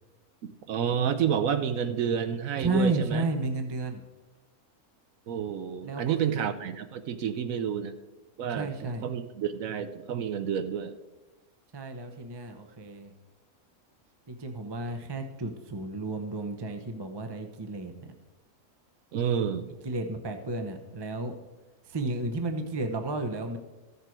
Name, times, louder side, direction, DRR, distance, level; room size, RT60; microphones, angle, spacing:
voice 1, 0.4-3.3 5.3-7.9 8.4-10.9 19.1-19.7, right 8 dB, 70° right, 10 dB, 1.0 m, -29 dB
voice 2, 2.6-4.0 5.8-6.5 8.5-9.0 11.7-13.1 14.3-18.1 19.8-21.3 21.9-23.6, right 2 dB, 30° right, 6 dB, 0.5 m, -32 dB
14.5 x 6.7 x 4.5 m, 1.2 s
omnidirectional pair, 1.6 m